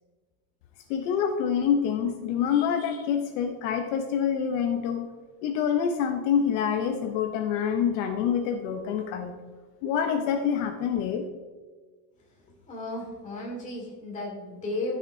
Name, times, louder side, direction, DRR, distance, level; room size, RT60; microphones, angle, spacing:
voice 1, 0.9-5.1 5.4-9.3 9.8-11.3, left 7 dB, 65° left, 5 dB, 0.8 m, -26 dB
voice 2, 12.7-15.0, left 2 dB, 20° left, -2 dB, 1.9 m, -34 dB
12.5 x 6.0 x 2.7 m, 1.4 s
cardioid pair, 170°, 40 cm